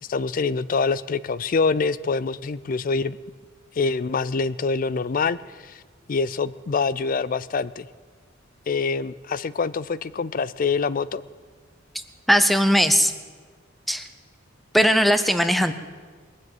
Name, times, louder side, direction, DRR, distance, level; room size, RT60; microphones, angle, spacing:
voice 1, 0.1-3.2 3.8-5.8 6.1-7.9 8.7-11.2, left 4 dB, 40° left, 18 dB, 0.4 m, -25 dB
voice 2, 12.3-13.1 13.9-14.0 14.7-15.7, equal, ahead, 10 dB, 0.7 m, -18 dB
21.5 x 7.6 x 7.9 m, 1.5 s
head